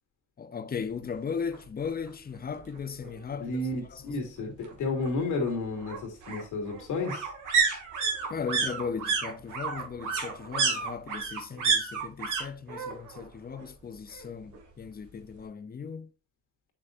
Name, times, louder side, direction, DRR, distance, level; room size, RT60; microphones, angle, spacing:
voice 1, 0.4-3.6 3.9-4.2 4.5-4.6 8.3-16.1, left 6 dB, 30° left, 0.7 m, -37 dB
sound 1, 1.5-1.6 2.0-2.1 2.4-3.4 4.6-12.4 12.7-13.3 13.5-14.6 14.9-15.0, right 5 dB, 80° right, 2.5 m, -30 dB
voice 2, 3.4-7.3, left 3 dB, 80° left, 2.8 m, -32 dB
8.3 x 6.1 x 2.6 m
cardioid pair, 90°, 30 cm